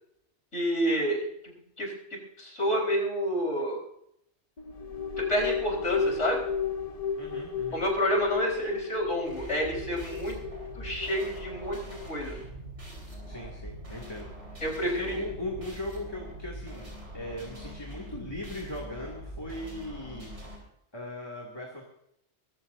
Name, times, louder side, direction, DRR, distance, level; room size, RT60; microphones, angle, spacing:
voice 1, 0.5-1.9 2.4-3.8 5.2-6.5 7.7-10.4 10.8-12.4 14.6-15.1, equal, 85° left, 0 dB, 4.9 m, -29 dB
sound 1, 4.6-12.1, left 6 dB, 40° left, 0.7 m, -34 dB
voice 2, 7.2-7.8 13.3-20.3 20.9-21.8, left 1 dB, 20° left, -2 dB, 2.4 m, -38 dB
sound 2, 9.3-20.6, right 1 dB, 75° right, 5.1 m, -43 dB
22.5 x 14.0 x 2.7 m, 0.75 s
omnidirectional pair, 1.2 m